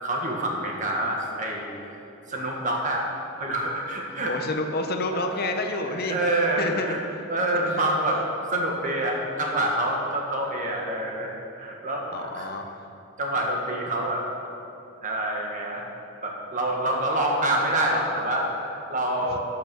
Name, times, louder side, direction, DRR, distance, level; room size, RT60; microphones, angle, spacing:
voice 1, 0.0-1.7 2.3-3.1 3.4-4.3 5.1-7.0 7.3-8.2 8.5-12.5 13.2-14.2 15.0-15.8 16.2-19.4, right 1 dB, 35° right, 0 dB, 1.6 m, -27 dB
voice 2, 4.3-6.2 6.6-7.0 7.5-7.9 12.1-12.8 14.0-14.1 19.3-19.4, left 2 dB, 45° left, 5 dB, 0.8 m, -29 dB
11.5 x 6.7 x 6.9 m, 2.8 s
head